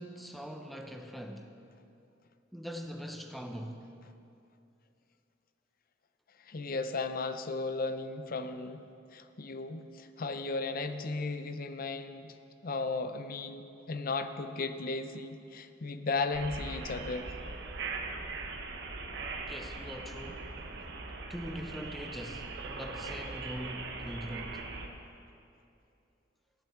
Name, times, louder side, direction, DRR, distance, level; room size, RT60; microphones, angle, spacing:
voice 1, 0.0-1.5 2.5-3.9 19.5-20.5 21.3-24.7, equal, ahead, 4 dB, 0.9 m, -42 dB
voice 2, 6.5-8.8 9.1-12.3 12.6-17.3, left 3 dB, 50° left, 9 dB, 0.6 m, -35 dB
sound 1, 16.3-24.9, right 3 dB, 65° right, 1.1 m, -40 dB
16.5 x 11.0 x 4.5 m, 2.7 s
head